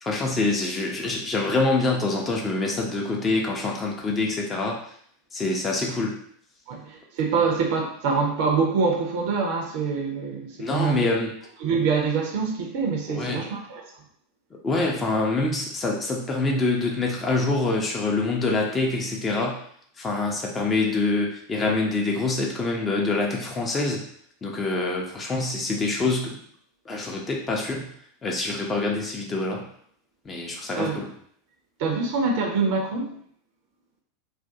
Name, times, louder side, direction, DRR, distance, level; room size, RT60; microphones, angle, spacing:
voice 1, 0.0-4.8 5.3-6.2 10.6-11.3 13.1-13.4 14.6-19.6 20.0-24.0 24.4-26.4 26.9-27.9 28.2-29.7 30.2-31.1, left 3 dB, 20° left, -1 dB, 0.6 m, -25 dB
voice 2, 6.7-11.1 11.6-13.9 30.7-31.0 31.8-33.1, right 5 dB, 50° right, 1 dB, 0.5 m, -25 dB
2.4 x 2.2 x 2.7 m, 0.63 s
figure-of-eight pair, 85°, 0 cm